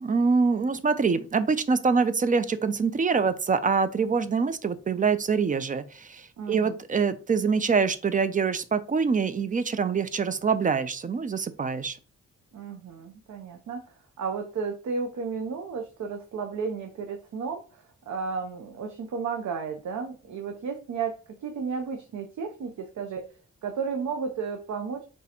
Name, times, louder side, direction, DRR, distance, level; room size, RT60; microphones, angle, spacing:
voice 1, 0.0-12.0, right 5 dB, 30° right, 13 dB, 0.3 m, -25 dB
voice 2, 6.4-6.8 12.5-13.8 14.2-21.1 21.4-23.2 23.6-25.0, right 5 dB, 70° right, 4 dB, 0.6 m, -33 dB
3.6 x 2.9 x 4.0 m, 0.36 s
wide cardioid pair, 120°, 30 cm